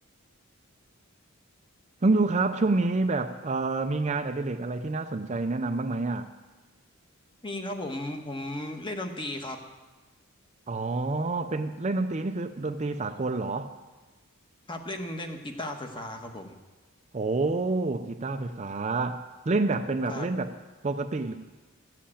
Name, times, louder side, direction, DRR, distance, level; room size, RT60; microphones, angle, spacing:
voice 1, 2.0-6.3 10.7-13.7 17.1-19.2 19.5-20.5 20.8-21.3, right 3 dB, 30° right, 8 dB, 0.5 m, -28 dB
voice 2, 7.4-9.6 14.7-16.5 20.1-20.3, left 1 dB, 20° left, 4 dB, 1.2 m, -35 dB
14.0 x 7.6 x 8.6 m, 1.2 s
head